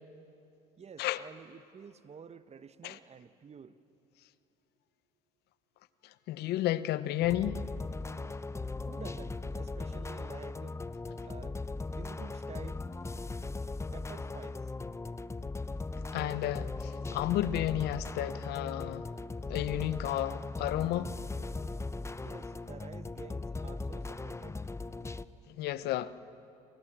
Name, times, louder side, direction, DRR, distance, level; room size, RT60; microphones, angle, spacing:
voice 1, 0.8-3.8 8.9-10.8 11.2-12.8 13.9-14.7 22.2-24.6, right 6 dB, 35° right, 1.2 m, -50 dB
voice 2, 6.3-7.6 16.1-19.1 19.5-21.1 25.5-26.1, left 14 dB, 65° left, 1.0 m, -32 dB
sound 1, 7.2-25.2, left 3 dB, 15° left, 0.9 m, -38 dB
29.5 x 27.0 x 7.4 m
hypercardioid pair, 65°, 18 cm